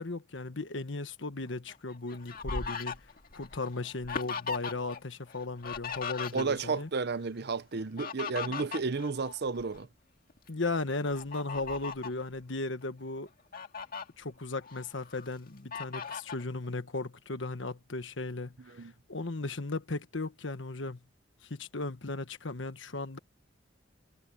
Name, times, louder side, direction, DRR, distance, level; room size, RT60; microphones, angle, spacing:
voice 1, 0.0-3.0 3.3-6.9 8.5-8.6 10.5-13.3 14.2-21.0 21.4-23.2, left 3 dB, 65° left, 1.3 m, -36 dB
Fowl, 1.7-5.0 5.3-6.8 7.7-9.8 10.3-10.5 11.1-12.2 12.8-12.9 13.3-14.0 14.6-15.3 15.7-16.4, left 5 dB, 45° left, 1.9 m, -39 dB
voice 2, 6.3-9.9 18.7-18.9, right 4 dB, 55° right, 0.7 m, -32 dB
head